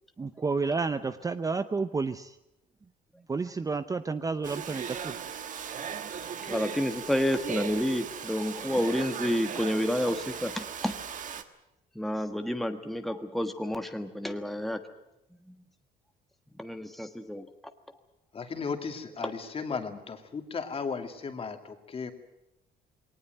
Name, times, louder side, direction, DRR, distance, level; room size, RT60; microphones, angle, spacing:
voice 1, 0.2-2.4 3.3-5.2, right 4 dB, 20° right, 11 dB, 0.7 m, -30 dB
Domestic sounds home sounds, 4.4-11.4, right 7 dB, 50° right, 1.5 m, -38 dB
voice 2, 6.4-11.0 11.9-14.8 15.5-15.6 16.6-17.5, equal, ahead, 6 dB, 1.4 m, -30 dB
voice 3, 18.3-22.1, left 5 dB, 35° left, 6 dB, 2.5 m, -35 dB
20.5 x 19.0 x 9.1 m, 0.88 s
cardioid pair, 110°, 17 cm